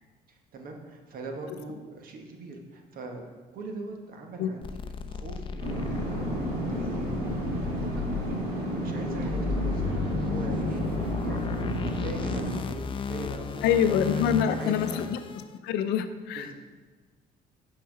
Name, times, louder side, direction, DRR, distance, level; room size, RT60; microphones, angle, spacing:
voice 1, 0.3-4.8 5.1-13.6 14.0-15.0 16.3-16.5, right 3 dB, 60° right, 3 dB, 1.2 m, -42 dB
sound 1, 4.6-15.4, left 5 dB, 30° left, 0.4 m, -34 dB
sound 2, 5.6-12.6, right 1 dB, 90° right, 1.8 m, -32 dB
voice 2, 13.6-15.2 15.6-16.5, left 8 dB, 85° left, 10 dB, 0.5 m, -25 dB
5.6 x 5.5 x 5.4 m, 1.3 s
cardioid pair, 110°, 17 cm